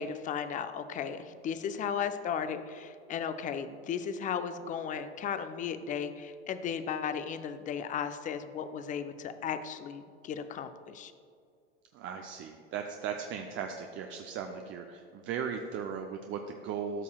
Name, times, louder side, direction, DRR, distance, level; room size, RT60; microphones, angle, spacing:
voice 1, 0.0-11.1, left 7 dB, 25° left, 10 dB, 0.4 m, -35 dB
voice 2, 11.9-17.0, right 7 dB, 35° right, 4 dB, 0.5 m, -37 dB
13.0 x 5.5 x 2.3 m, 2.2 s
hypercardioid pair, 95°, 34 cm